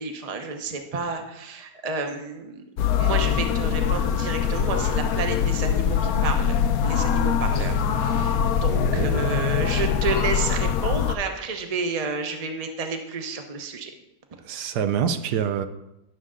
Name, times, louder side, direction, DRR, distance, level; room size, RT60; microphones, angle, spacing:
voice 1, 0.0-2.6 3.0-6.6 6.8-13.9, right 4 dB, 30° right, 0.7 m, -30 dB
sound 1, 2.8-11.1, left 7 dB, 70° left, 1.0 m, -23 dB
voice 2, 8.7-9.4 14.4-15.7, right 8 dB, 85° right, 1.3 m, -27 dB
11.0 x 6.5 x 3.7 m
omnidirectional pair, 1.7 m